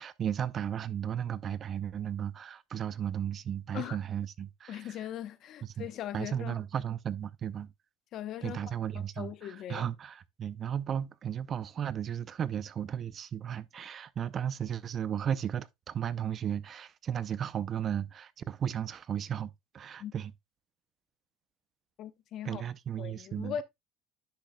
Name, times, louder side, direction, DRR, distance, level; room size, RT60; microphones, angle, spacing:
voice 1, 0.0-5.0 5.6-5.9 6.1-7.7 8.4-20.3 22.4-23.6, right 9 dB, 35° right, 0.5 m, -35 dB
voice 2, 4.7-6.6 8.1-8.6 8.9-9.9 20.0-20.1 22.0-22.6 23.0-23.6, left 10 dB, 50° left, 0.8 m, -39 dB
10.0 x 6.4 x 2.2 m
cardioid pair, 125°, 0 cm